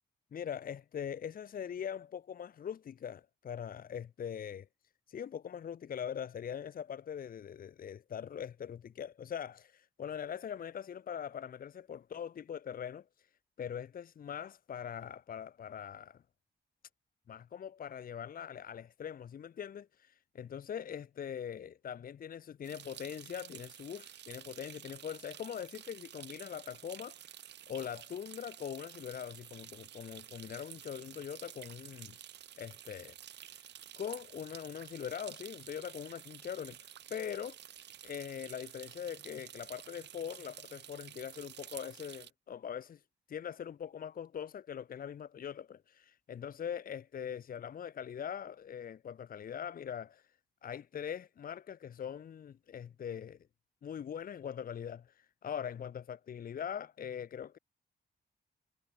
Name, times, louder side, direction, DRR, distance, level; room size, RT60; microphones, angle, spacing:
voice 1, 0.3-4.7 5.1-13.3 13.6-16.2 17.3-27.4 27.7-32.1 32.6-33.2 33.4-33.6 34.0-37.6 38.0-43.0 43.3-50.3 50.6-53.4 53.8-57.6, left 8 dB, 55° left, 1.1 m, -42 dB
sound 1, 22.6-42.3, right 11 dB, 80° right, 0.8 m, -51 dB
wide cardioid pair, 170°, 18 cm